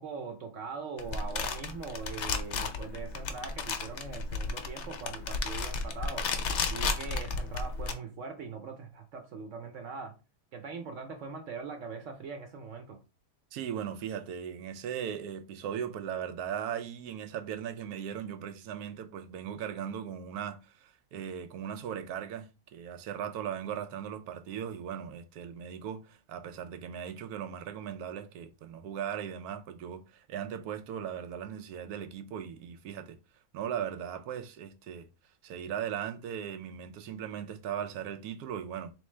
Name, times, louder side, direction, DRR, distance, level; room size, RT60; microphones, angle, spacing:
voice 1, 0.0-6.3 6.6-10.1 10.5-13.0, right 5 dB, 65° right, 1.0 m, -41 dB
sound 1, 1.0-7.9, left 4 dB, 60° left, 0.8 m, -33 dB
voice 2, 13.5-33.2 33.5-35.1 35.4-38.9, right 9 dB, 90° right, 1.1 m, -38 dB
3.9 x 3.2 x 3.2 m
omnidirectional pair, 1.6 m